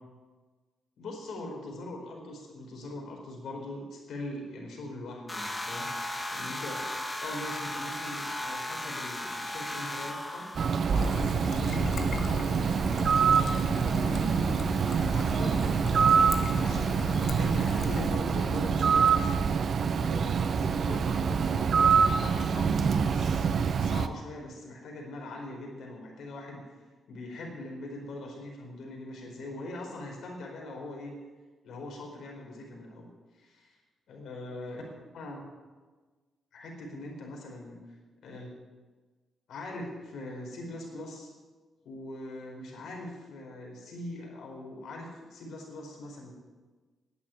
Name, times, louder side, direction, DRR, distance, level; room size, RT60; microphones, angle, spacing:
voice 1, 1.0-5.9 6.3-6.9 7.2-10.5 10.9-12.9 13.8-14.5 15.0-16.2 16.5-23.4 23.8-26.8 27.1-31.1 31.6-33.1 33.4-33.8 34.1-35.4 36.5-37.8 38.2-38.5 39.5-41.3 41.8-46.3, left 1 dB, 75° left, 0 dB, 4.4 m, -41 dB
sound 1, 5.3-11.4, left 1 dB, 15° left, 1.8 m, -36 dB
Bird, 10.5-24.1, right 6 dB, 60° right, 0.7 m, -25 dB
Trickle dribble, 11.0-18.1, left 4 dB, 60° left, 1.4 m, -38 dB
11.0 x 9.1 x 8.8 m, 1.3 s
cardioid pair, 75°, 0 cm